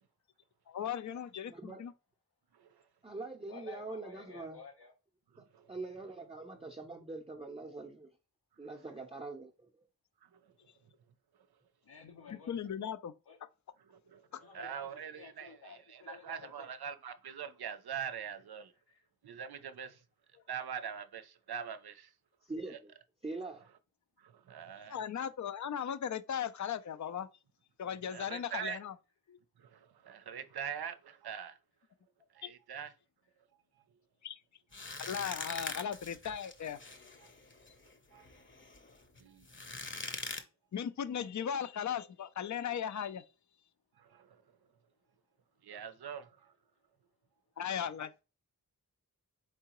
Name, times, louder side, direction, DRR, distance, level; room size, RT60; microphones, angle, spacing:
voice 1, 0.7-1.9 12.3-13.1 14.3-14.4 24.8-27.3 27.8-28.9 29.3-29.4 32.4-32.5 34.2-34.4 35.0-36.8 40.7-43.2 47.6-48.1, left 8 dB, 50° left, 0.4 m, -37 dB
voice 2, 1.5-1.8 3.0-4.6 5.4-8.1 8.6-9.7 22.5-22.9 23.2-23.7, right 3 dB, 15° right, 0.6 m, -43 dB
voice 3, 3.5-4.9 11.8-12.7 13.2-13.4 14.4-16.8 18.7-19.0, left 6 dB, 80° left, 0.9 m, -53 dB
voice 4, 5.3-5.7 14.1-14.2 14.5-18.7 19.2-20.0 20.5-22.1 24.2-25.0 28.1-28.8 29.6-31.6 32.3-32.9 38.1-38.2 39.2-39.5 44.0-44.3 45.6-46.3, right 8 dB, 85° right, 0.6 m, -43 dB
sound 1, 34.7-40.4, left 3 dB, 30° left, 0.8 m, -43 dB
4.6 x 3.7 x 2.9 m
wide cardioid pair, 50°, 37 cm